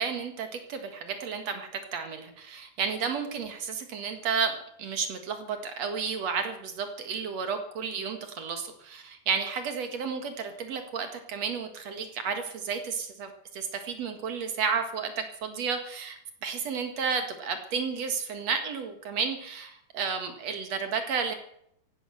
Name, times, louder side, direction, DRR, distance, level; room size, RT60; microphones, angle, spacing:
voice 1, 0.0-21.3, right 6 dB, 50° right, 7 dB, 2.3 m, -32 dB
16.0 x 11.5 x 7.7 m, 0.72 s
omnidirectional pair, 4.6 m